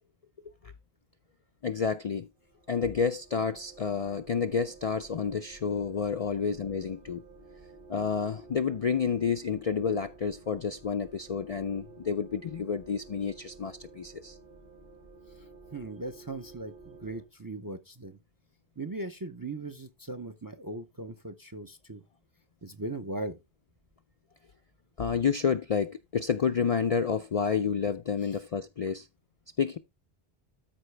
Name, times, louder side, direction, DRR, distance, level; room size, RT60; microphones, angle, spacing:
voice 1, 1.6-2.3 2.7-7.2 7.9-14.4 25.0-29.1 29.6-29.8, left 6 dB, 50° left, 0.4 m, -29 dB
sound 1, 2.4-17.3, right 3 dB, 50° right, 2.0 m, -52 dB
voice 2, 15.7-18.2 18.8-22.0 22.6-23.4 28.2-28.3, right 2 dB, 25° right, 0.5 m, -39 dB
13.0 x 4.8 x 3.3 m
omnidirectional pair, 1.1 m